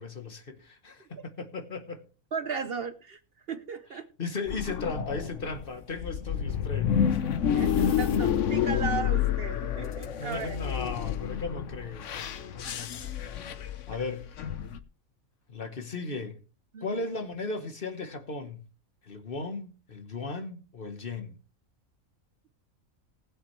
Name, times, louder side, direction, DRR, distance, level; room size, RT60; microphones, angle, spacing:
voice 1, 0.0-2.0 4.2-7.2 10.2-13.3 13.9-14.3 15.5-16.4 16.8-18.6 19.0-21.4, left 3 dB, 45° left, 1.2 m, -36 dB
voice 2, 2.3-3.2 3.5-4.1 7.5-10.6 12.8-12.9 16.7-17.0, right 5 dB, 55° right, 0.8 m, -36 dB
sound 1, 4.5-14.8, left 8 dB, 65° left, 1.1 m, -29 dB
19.0 x 8.1 x 3.1 m
omnidirectional pair, 1.4 m